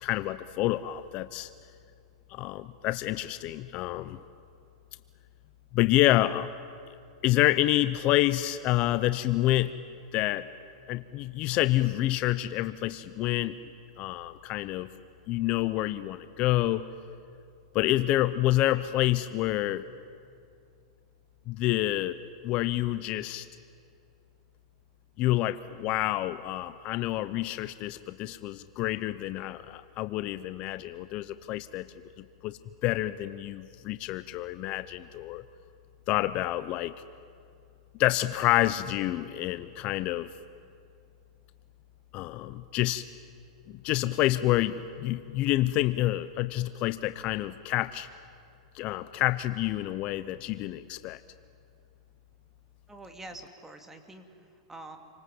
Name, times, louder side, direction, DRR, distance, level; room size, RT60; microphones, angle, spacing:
voice 1, 0.0-1.5 2.3-4.2 5.7-6.5 7.2-9.7 10.1-10.5 10.9-13.5 14.0-14.9 15.3-16.9 17.7-19.9 21.5-22.2 22.4-23.5 25.2-31.9 32.2-35.4 36.1-36.9 38.0-40.3 42.1-43.0 43.7-48.1 48.7-51.2, left 15 dB, 40° left, 13 dB, 0.8 m, -28 dB
voice 2, 52.9-55.0, right 2 dB, 10° right, 5 dB, 2.6 m, -46 dB
29.0 x 25.0 x 7.9 m, 2.5 s
hypercardioid pair, 130°, 3 cm